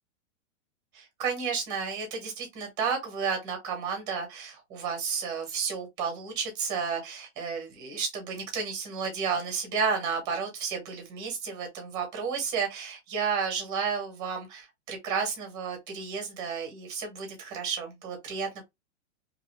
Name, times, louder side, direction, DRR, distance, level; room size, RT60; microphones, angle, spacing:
voice 1, 0.9-18.6, right 6 dB, 10° right, 0.7 m, -32 dB
2.7 x 2.4 x 3.0 m
supercardioid pair, 175°, 36 cm